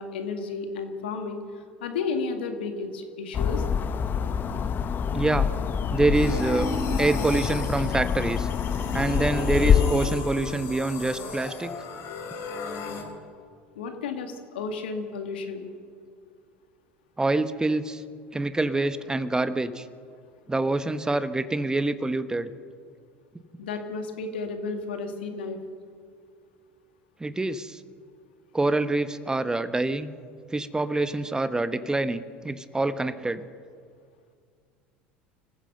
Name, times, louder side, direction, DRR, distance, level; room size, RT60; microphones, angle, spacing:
voice 1, 0.0-3.6 13.8-15.7 23.6-25.6, left 4 dB, 75° left, 5 dB, 2.0 m, -32 dB
sound 1, 3.3-9.9, left 7 dB, 35° left, 1.0 m, -26 dB
voice 2, 5.1-5.5 5.9-6.7 7.0-8.5 8.9-11.7 17.2-18.0 18.3-19.9 20.5-22.5 27.2-27.8 28.5-30.1 30.5-33.4, right 2 dB, 15° right, 12 dB, 1.1 m, -26 dB
sound 2, 6.1-13.0, left 3 dB, 55° left, 4.2 m, -34 dB
25.5 x 15.0 x 6.7 m, 2.2 s
hypercardioid pair, 70°, 5 cm